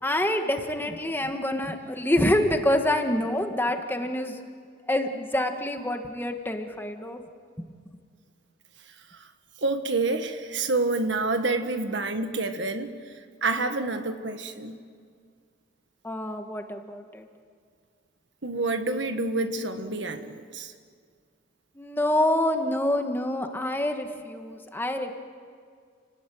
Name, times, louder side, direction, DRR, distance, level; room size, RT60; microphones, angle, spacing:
voice 1, 0.0-4.4 4.9-7.2 7.6-7.7 16.0-17.2 21.7-25.1, left 1 dB, 10° left, 5 dB, 1.7 m, -26 dB
voice 2, 9.6-13.0 13.4-14.8 18.4-20.7, right 3 dB, 70° right, 8 dB, 1.6 m, -28 dB
30.0 x 18.5 x 9.4 m, 2.1 s
head